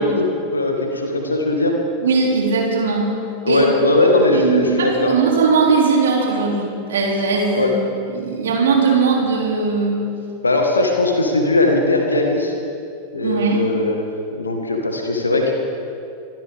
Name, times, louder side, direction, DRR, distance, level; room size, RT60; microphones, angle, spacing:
voice 1, 0.0-1.8 3.4-5.1 7.5-7.7 10.4-12.5 13.1-15.5, left 2 dB, 80° left, 2 dB, 1.7 m, -19 dB
voice 2, 2.0-3.1 3.5-3.7 4.3-7.7 8.1-10.0 13.2-13.6, right 4 dB, 65° right, -1 dB, 3.1 m, -19 dB
25.0 x 14.0 x 3.7 m, 2.6 s
figure-of-eight pair, 90°, 0 cm